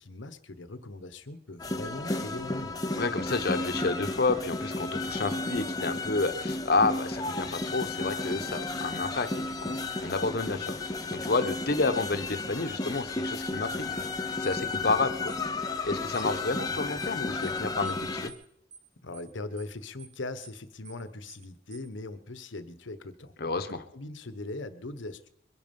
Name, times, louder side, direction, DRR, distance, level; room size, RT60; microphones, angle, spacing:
voice 1, 0.0-2.8 19.0-25.3, left 2 dB, 80° left, 12 dB, 1.1 m, -40 dB
sound 1, 1.6-18.3, left 2 dB, 20° left, 0.9 m, -33 dB
voice 2, 3.0-10.7 11.1-14.1 14.4-15.3 15.8-18.3 23.4-23.8, left 3 dB, 55° left, 9 dB, 1.0 m, -30 dB
sound 2, 14.4-14.6 15.3-15.4 16.1-16.3 17.0-17.2 17.4-17.6 17.8-18.0 18.3-18.4 18.7-18.9 19.1-19.3 19.6-19.7 20.0-20.2 20.4-20.6 20.8-21.0 21.3-21.4 21.7-21.9, right 6 dB, 20° right, 2.4 m, -50 dB
22.5 x 11.0 x 5.4 m, 0.73 s
head